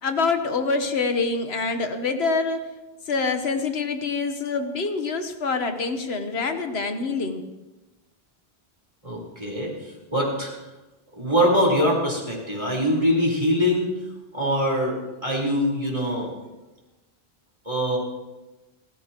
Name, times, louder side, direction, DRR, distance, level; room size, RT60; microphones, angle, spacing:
voice 1, 0.0-2.7 3.1-7.4, left 4 dB, 85° left, 7 dB, 1.4 m, -25 dB
voice 2, 9.0-10.5 11.1-14.0 14.3-15.0 15.2-16.3 17.6-18.0, equal, 30° right, -3 dB, 4.4 m, -23 dB
30.0 x 15.0 x 3.0 m, 1.1 s
omnidirectional pair, 1.0 m